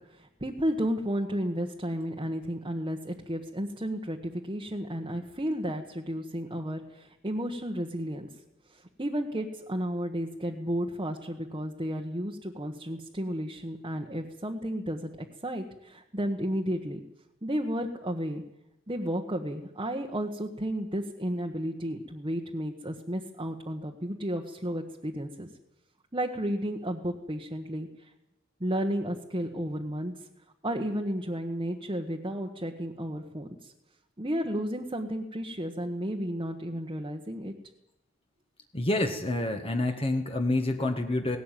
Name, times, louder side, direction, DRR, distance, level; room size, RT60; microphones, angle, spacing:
voice 1, 0.1-8.3 8.7-17.0 17.4-18.4 18.9-25.5 26.1-28.1 28.6-30.3 30.6-33.7 34.2-37.5, equal, 25° right, 1 dB, 1.4 m, -33 dB
voice 2, 38.7-41.4, left 2 dB, 30° left, 4 dB, 1.6 m, -28 dB
18.5 x 17.0 x 9.2 m, 0.88 s
head